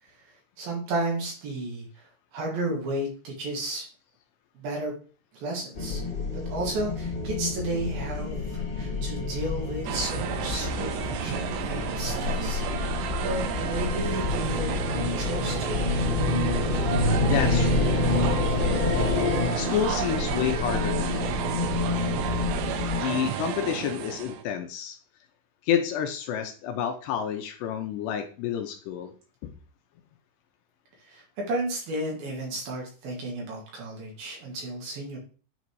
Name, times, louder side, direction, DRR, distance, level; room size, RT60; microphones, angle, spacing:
voice 1, 0.0-3.9 4.6-5.0 5.3-6.0 6.3-12.6 13.2-15.8 31.0-35.2, right 1 dB, 60° right, -1 dB, 3.6 m, -33 dB
sound 1, 5.7-23.0, left 3 dB, 30° left, 2.6 m, -28 dB
sound 2, 9.9-24.4, right 10 dB, 90° right, 3.1 m, -32 dB
sound 3, 15.1-21.3, left 1 dB, 50° left, 2.4 m, -41 dB
voice 2, 17.2-18.0 19.6-21.3 22.9-25.0 25.6-29.1 29.4-29.5, left 9 dB, 80° left, 5 dB, 2.8 m, -29 dB
9.5 x 4.0 x 4.7 m, 0.39 s
omnidirectional pair, 5.3 m